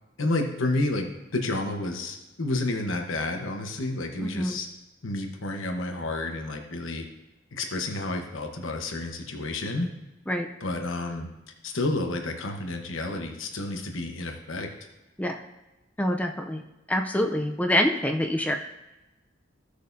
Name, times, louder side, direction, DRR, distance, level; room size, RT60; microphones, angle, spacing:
voice 1, 0.2-1.1 1.3-4.7 5.0-7.1 7.5-9.9 10.6-11.3 11.6-14.7, left 2 dB, 90° left, 4 dB, 1.1 m, -30 dB
voice 2, 4.2-4.6 10.3-10.5 15.2-15.4 16.0-16.6 16.9-18.6, left 1 dB, 10° left, 4 dB, 0.5 m, -26 dB
15.5 x 6.5 x 2.7 m, 1.0 s
head